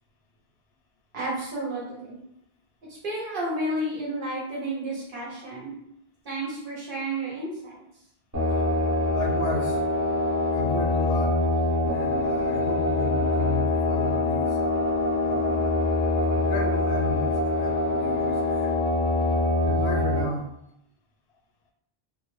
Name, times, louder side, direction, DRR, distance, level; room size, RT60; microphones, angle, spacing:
voice 1, 1.1-2.2 2.9-5.7 6.2-7.8, right 1 dB, 60° right, -5 dB, 0.8 m, -31 dB
sound 1, 8.3-20.2, left 2 dB, 20° right, 0.8 m, -24 dB
voice 2, 9.1-9.8 10.5-11.4 11.9-14.6 15.2-15.9 16.3-18.8 19.6-20.5, left 3 dB, 85° left, 2 dB, 0.8 m, -34 dB
2.2 x 2.0 x 3.0 m, 0.77 s
omnidirectional pair, 1.0 m